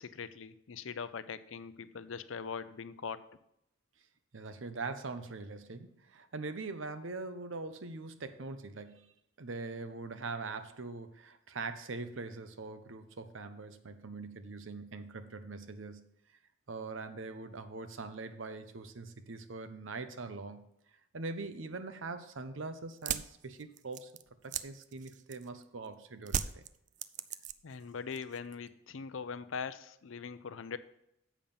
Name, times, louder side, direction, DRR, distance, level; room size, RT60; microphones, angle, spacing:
voice 1, 0.0-3.2 27.6-30.8, left 6 dB, 75° left, 13 dB, 0.5 m, -41 dB
voice 2, 4.3-9.1 9.4-16.1 16.7-20.7 21.1-26.6, right 3 dB, 70° right, 10 dB, 0.8 m, -42 dB
sound 1, 22.9-25.6 26.3-27.8 28.1-28.7, right 9 dB, 40° right, 0.3 m, -37 dB
7.3 x 5.4 x 7.1 m, 0.78 s
head